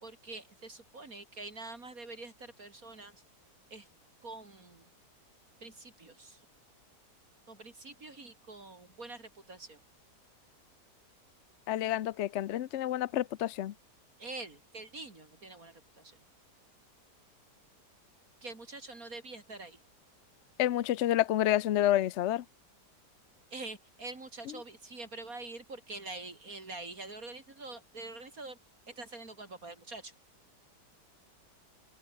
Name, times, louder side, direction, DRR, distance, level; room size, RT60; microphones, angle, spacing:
voice 1, 0.0-3.2 3.7-3.9 4.2-4.9 5.6-6.4 7.5-9.8 14.2-16.2 18.4-19.8 23.5-28.6 28.9-30.1, right 3 dB, 55° right, 3.7 m, -45 dB
voice 2, 11.7-13.7 20.6-22.4, left 13 dB, 65° left, 0.7 m, -29 dB
open air
omnidirectional pair, 1.8 m